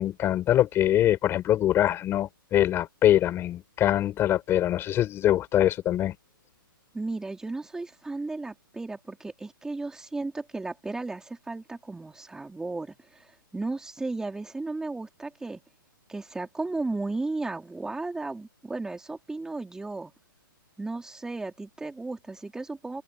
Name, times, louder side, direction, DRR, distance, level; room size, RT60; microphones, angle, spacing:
voice 1, 0.0-6.1, left 12 dB, 20° left, 6.3 m, -23 dB
voice 2, 6.9-13.3 13.5-15.6 16.1-20.1 20.8-23.0, right 3 dB, 5° right, 4.3 m, -34 dB
hypercardioid pair, 140°, 12 cm